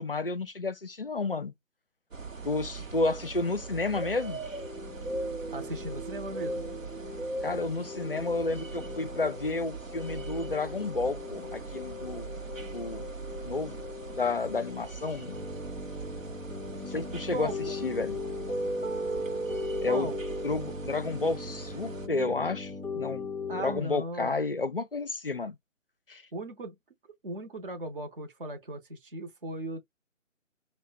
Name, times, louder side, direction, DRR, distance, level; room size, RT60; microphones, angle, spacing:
voice 1, 0.0-1.5 2.4-4.4 7.4-12.3 12.7-13.0 13.4-13.8 14.2-15.3 16.9-18.2 19.8-20.1 20.4-23.2 23.6-25.6 26.1-26.2, left 3 dB, 45° left, 0.4 m, -31 dB
sound 1, 2.1-22.1, right 4 dB, 75° right, 0.9 m, -41 dB
sound 2, 4.5-23.8, left 1 dB, 10° left, 0.7 m, -38 dB
voice 2, 5.5-6.7 17.3-17.8 19.9-20.2 23.5-24.4 26.3-26.8 27.2-29.8, right 1 dB, 45° right, 0.7 m, -37 dB
5.5 x 2.1 x 2.3 m
figure-of-eight pair, 150°, 39 cm